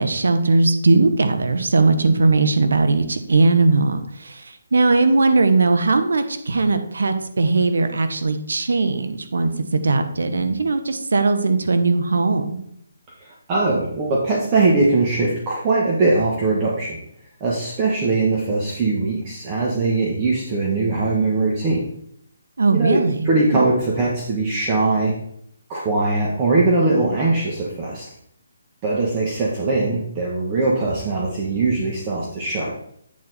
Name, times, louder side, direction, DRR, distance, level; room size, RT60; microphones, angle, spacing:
voice 1, 0.0-12.6 22.6-23.6, right 3 dB, 70° right, 9 dB, 0.9 m, -19 dB
voice 2, 13.2-17.0 17.4-21.9 22.7-23.0 23.2-25.1 25.7-28.1 28.8-32.7, right 3 dB, 25° right, -4 dB, 1.4 m, -21 dB
8.4 x 4.4 x 4.1 m, 0.70 s
figure-of-eight pair, 150°, 0 cm